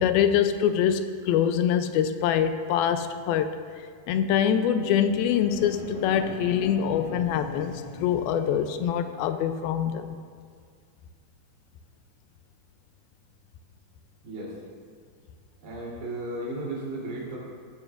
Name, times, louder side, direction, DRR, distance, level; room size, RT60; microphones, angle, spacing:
voice 1, 0.0-3.6 4.1-10.2, left 9 dB, 85° left, 9 dB, 2.4 m, -24 dB
sound 1, 4.8-9.4, left 3 dB, 70° left, 2.6 m, -40 dB
voice 2, 14.2-14.6 15.6-17.4, right 1 dB, 80° right, -5 dB, 5.4 m, -34 dB
17.5 x 13.5 x 2.5 m, 2.1 s
omnidirectional pair, 4.3 m